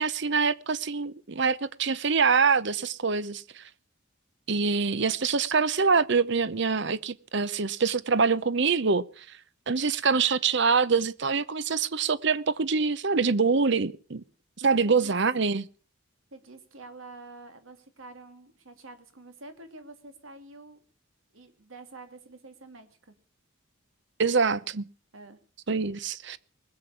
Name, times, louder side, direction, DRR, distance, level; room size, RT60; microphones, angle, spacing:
voice 1, 0.0-3.6 4.5-9.2 9.7-14.2 14.6-15.7 24.2-24.8 25.7-26.4, right 5 dB, 60° right, 0.8 m, -25 dB
voice 2, 14.6-15.2 16.3-20.8 21.3-23.1 24.4-24.5 25.1-25.4, right 3 dB, 80° right, 2.8 m, -47 dB
20.5 x 7.9 x 8.5 m
head